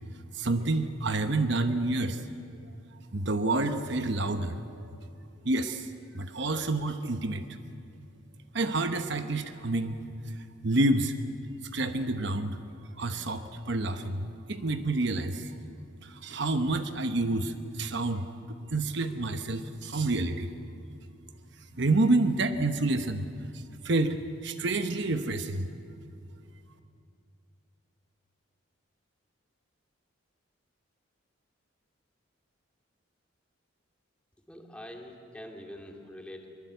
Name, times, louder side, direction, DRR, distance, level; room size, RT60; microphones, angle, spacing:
voice 1, 0.3-2.2 3.1-4.9 5.4-5.9 6.1-7.4 8.5-10.0 10.6-11.1 11.7-12.6 13.0-15.5 16.0-18.3 18.7-20.5 21.8-23.3 23.8-25.7, right 2 dB, 55° right, 8 dB, 1.0 m, -28 dB
voice 2, 34.5-36.5, left 1 dB, 5° left, 1 dB, 2.4 m, -44 dB
23.5 x 22.5 x 8.1 m, 2.5 s
head